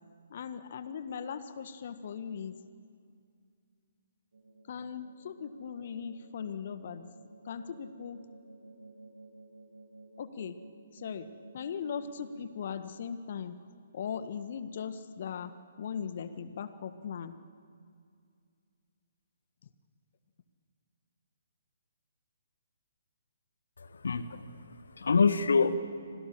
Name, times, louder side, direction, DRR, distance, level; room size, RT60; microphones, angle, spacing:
voice 1, 0.3-2.6 4.7-7.1 7.4-8.3 10.2-10.6 10.9-13.6 13.9-17.4, left 7 dB, 50° left, 11 dB, 1.5 m, -39 dB
sound 1, 4.3-12.5, right 2 dB, 70° right, 3.2 m, -54 dB
voice 2, 23.8-25.8, left 4 dB, 65° left, 12 dB, 1.7 m, -27 dB
30.0 x 26.0 x 7.7 m, 2.3 s
figure-of-eight pair, 135°, 0 cm